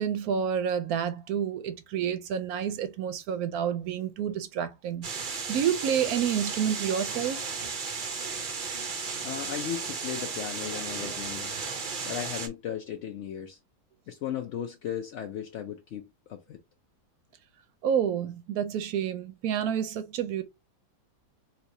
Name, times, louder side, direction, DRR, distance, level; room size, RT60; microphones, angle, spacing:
voice 1, 0.0-5.1 5.5-7.4 17.8-20.4, right 8 dB, 70° right, 1.0 m, -29 dB
sound 1, 5.0-12.5, right 5 dB, 55° right, 0.5 m, -34 dB
voice 2, 9.2-11.6 12.1-13.6 14.1-16.6, left 9 dB, 75° left, 0.6 m, -36 dB
3.3 x 2.9 x 2.6 m
omnidirectional pair, 1.8 m